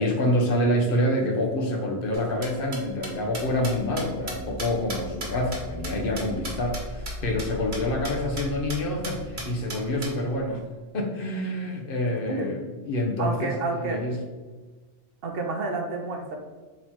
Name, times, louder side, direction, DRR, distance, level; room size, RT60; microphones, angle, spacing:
voice 1, 0.0-10.6 10.9-14.2, left 1 dB, 60° left, 2 dB, 0.8 m, -27 dB
sound 1, 2.1-6.8 7.1-7.2 7.4-7.5 7.7-7.8 8.0-8.4 8.7-8.8 9.0-10.1, right 2 dB, 45° right, 1.2 m, -36 dB
sound 2, 2.6-10.8, equal, 85° right, 1.0 m, -40 dB
voice 2, 13.2-14.0 15.2-16.4, right 3 dB, 60° right, 3 dB, 0.8 m, -29 dB
4.0 x 2.8 x 4.4 m, 1.3 s
omnidirectional pair, 1.1 m